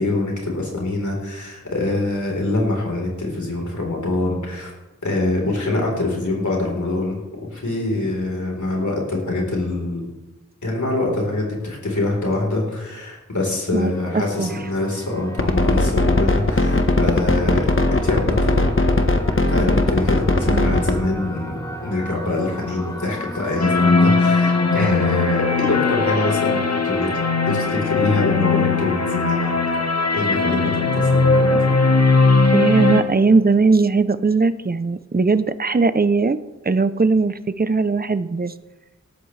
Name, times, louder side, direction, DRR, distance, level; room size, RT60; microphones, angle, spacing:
voice 1, 0.0-4.7 5.0-10.1 10.6-18.7 19.5-27.1 27.5-29.7 30.1-31.7, left 2 dB, 80° left, -2 dB, 4.0 m, -24 dB
voice 2, 13.7-14.5 20.5-20.7 24.8-24.9 32.5-36.4 36.6-38.5, right 4 dB, 30° right, 13 dB, 0.6 m, -19 dB
sound 1, 13.8-29.1, equal, 10° left, 1.6 m, -36 dB
sound 2, 15.4-21.0, left 2 dB, 45° left, 1.3 m, -18 dB
sound 3, 23.6-33.0, left 3 dB, 60° left, 1.3 m, -19 dB
18.5 x 13.0 x 3.3 m, 1.1 s
wide cardioid pair, 55°, 29 cm